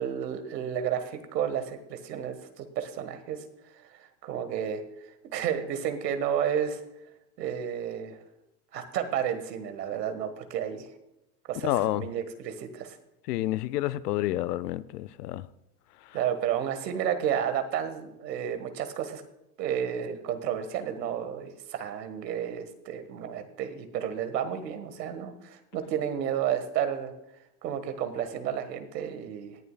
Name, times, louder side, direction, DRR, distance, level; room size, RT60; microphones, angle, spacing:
voice 1, 0.0-3.4 3.7-4.8 5.3-6.8 7.4-8.2 8.7-10.9 11.5-13.0 16.1-19.2 19.6-27.1 27.6-29.6, right 9 dB, 75° right, 1.6 m, -31 dB
voice 2, 11.6-12.0 13.3-15.4, left 15 dB, 70° left, 0.7 m, -29 dB
18.0 x 11.0 x 2.3 m
hypercardioid pair, 95°, 50 cm